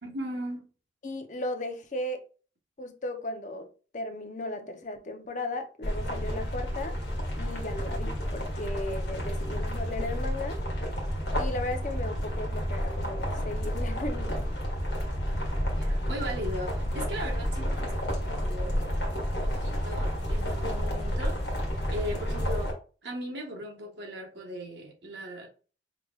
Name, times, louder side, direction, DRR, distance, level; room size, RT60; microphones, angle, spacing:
voice 1, 0.0-0.6 15.8-19.0 19.3-21.4 21.9-22.8 23.0-25.5, equal, 85° right, 1.2 m, -38 dB
voice 2, 1.0-2.2 2.8-3.7 3.9-7.0 7.4-10.6 11.3-14.5, left 2 dB, 45° left, 0.7 m, -36 dB
sound 1, 5.8-22.7, equal, 70° left, 1.5 m, -30 dB
4.7 x 3.4 x 2.3 m
head